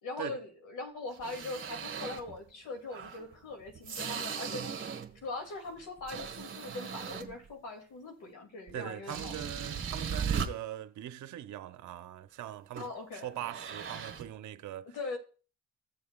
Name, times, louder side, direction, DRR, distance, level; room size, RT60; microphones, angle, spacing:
voice 1, 0.0-9.6 12.8-13.3 14.9-15.2, left 3 dB, 80° left, 2.5 m, -41 dB
sound 1, 1.1-2.4 2.9-5.2 5.6-7.5 8.7-8.8 9.1-10.5 12.8-13.0 13.4-14.3, right 7 dB, 40° right, 1.4 m, -38 dB
voice 2, 8.7-14.9, right 12 dB, 75° right, 0.8 m, -41 dB
15.0 x 7.0 x 2.3 m
cardioid pair, 90°, 30 cm